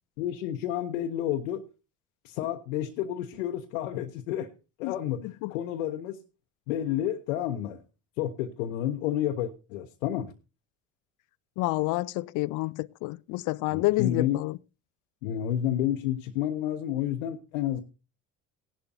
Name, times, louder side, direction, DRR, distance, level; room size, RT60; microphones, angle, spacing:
voice 1, 0.2-1.7 2.2-4.5 4.8-6.2 6.7-7.8 8.2-10.3 13.7-14.4 15.2-17.8, left 11 dB, 70° left, 1.0 m, -30 dB
voice 2, 11.6-14.6, left 20 dB, 50° left, 0.5 m, -29 dB
17.0 x 11.5 x 2.7 m
hypercardioid pair, 60°, 39 cm